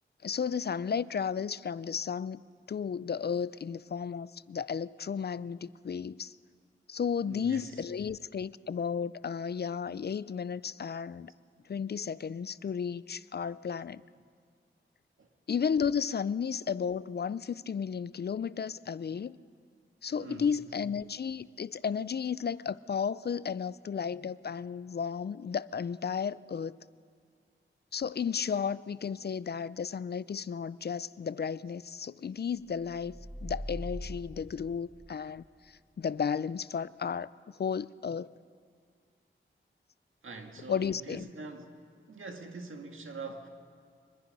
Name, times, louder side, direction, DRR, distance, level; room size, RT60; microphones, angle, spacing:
voice 1, 0.2-2.4 2.7-6.3 6.9-11.3 11.7-14.0 15.5-19.4 20.0-26.8 27.9-37.3 37.6-38.3 40.7-41.3, left 7 dB, 55° left, 0.4 m, -33 dB
voice 2, 7.3-7.8 15.2-15.3 20.2-20.6 40.2-41.8 42.1-43.5, right 3 dB, 80° right, 1.9 m, -44 dB
sound 1, 32.9-35.4, equal, ahead, 0.8 m, -42 dB
24.0 x 21.0 x 5.4 m
wide cardioid pair, 75°, 21 cm